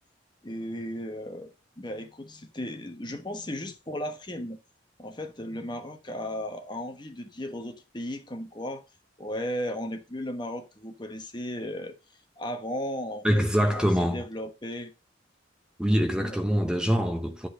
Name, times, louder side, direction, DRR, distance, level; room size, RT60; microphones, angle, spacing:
voice 1, 0.4-1.5 1.8-4.6 5.0-8.8 9.2-11.9 12.4-14.9 16.2-16.4, equal, 25° left, 1.0 m, -35 dB
voice 2, 13.2-14.2 15.8-17.5, equal, 5° right, 0.9 m, -24 dB
10.5 x 4.1 x 6.3 m
head